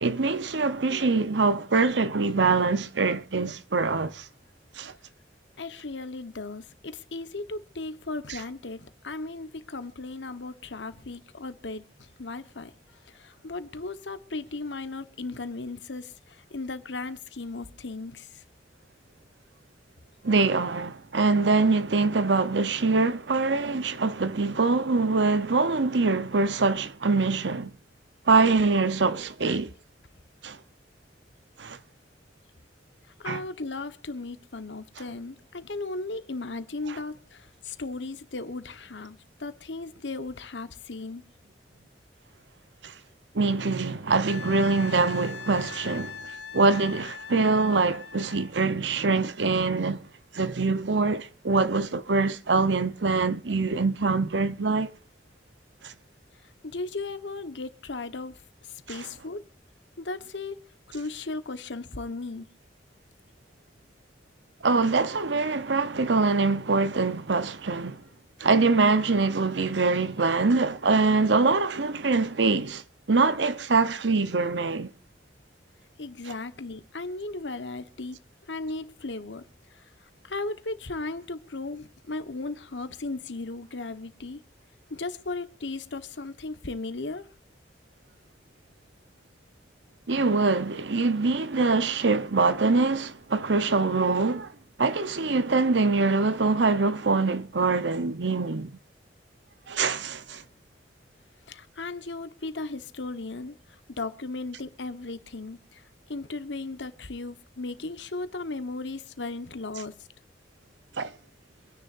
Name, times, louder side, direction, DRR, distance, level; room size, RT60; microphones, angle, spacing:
voice 1, 0.0-4.3 4.8-4.9 8.3-8.4 20.2-27.7 28.3-29.7 30.4-30.6 31.6-31.8 33.3-33.4 42.8-42.9 43.3-50.0 50.3-54.9 55.8-55.9 58.9-59.0 64.6-68.0 68.4-72.8 73.1-74.9 90.1-94.5 94.8-98.7 99.7-100.4 111.0-111.1, right 3 dB, 80° right, 0.9 m, -24 dB
voice 2, 5.6-12.7 13.0-18.4 33.2-41.2 56.6-59.4 60.0-60.6 60.9-62.5 76.0-78.2 78.5-79.5 79.7-79.9 80.2-84.4 84.9-87.3 101.5-103.5 104.0-105.8 106.1-109.9, left 3 dB, 85° left, 1.3 m, -36 dB
Wind instrument woodwind instrument, 44.3-48.5 51.2-51.3, left 6 dB, 65° left, 1.2 m, -41 dB
26.5 x 10.0 x 2.6 m
head